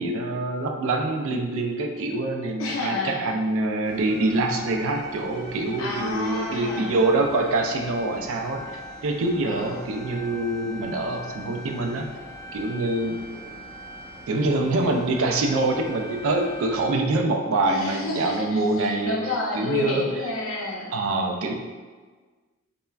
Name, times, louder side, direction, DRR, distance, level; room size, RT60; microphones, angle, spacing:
voice 1, 0.0-12.1 12.5-13.5 14.3-19.2 19.5-20.1 20.9-21.5, right 2 dB, 65° right, 3 dB, 0.3 m, -25 dB
voice 2, 2.6-3.3 5.8-7.1 9.4-9.8 17.6-20.9, left 2 dB, 65° left, -2 dB, 0.5 m, -30 dB
sound 1, 3.8-16.9, equal, ahead, 0.8 m, -41 dB
3.2 x 2.1 x 2.2 m, 1.4 s
head